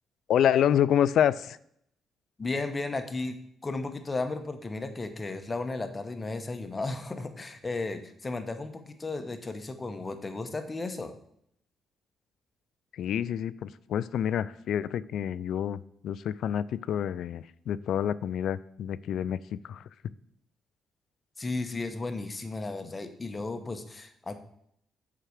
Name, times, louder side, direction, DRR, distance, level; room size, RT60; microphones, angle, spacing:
voice 1, 0.3-1.6 12.9-19.8, left 9 dB, 70° left, 18 dB, 0.3 m, -28 dB
voice 2, 2.4-11.1 21.4-24.4, left 3 dB, 25° left, 8 dB, 1.0 m, -34 dB
6.7 x 4.8 x 6.3 m, 0.71 s
cardioid pair, 90°, 0 cm